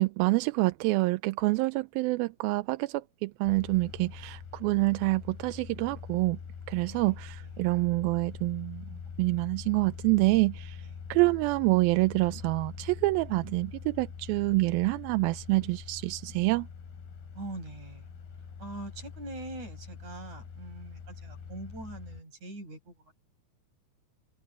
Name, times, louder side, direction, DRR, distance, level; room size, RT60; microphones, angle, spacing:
voice 1, 0.0-6.4 6.7-8.9 9.2-10.8 11.1-16.7, right 22 dB, 80° right, 2.3 m, -27 dB
sound 1, 3.4-22.2, left 6 dB, 80° left, 5.7 m, -44 dB
voice 2, 6.9-7.6 10.8-10.9 17.3-18.1 18.6-23.1, right 2 dB, 45° right, 7.4 m, -43 dB
omnidirectional pair, 4.4 m